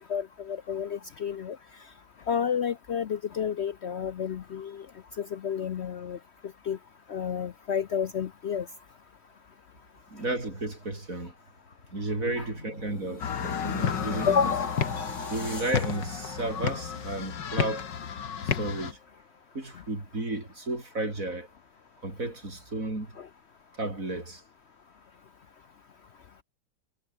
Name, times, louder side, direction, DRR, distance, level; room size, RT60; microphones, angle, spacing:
voice 1, 0.0-1.9 2.3-4.9 5.1-6.2 6.6-6.8 7.1-8.7 12.4-12.5 14.3-14.8 23.2-23.3, left 7 dB, 65° left, 0.6 m, -30 dB
voice 2, 10.1-11.3 11.9-14.5 15.3-17.9 18.4-19.0 19.5-21.5 22.0-23.1 23.8-24.4, right 2 dB, 50° right, 5.8 m, -33 dB
sound 1, 11.6-17.8 18.3-18.5, left 3 dB, 40° left, 4.1 m, -42 dB
sound 2, 13.2-18.9, left 7 dB, 85° left, 2.3 m, -31 dB
omnidirectional pair, 1.9 m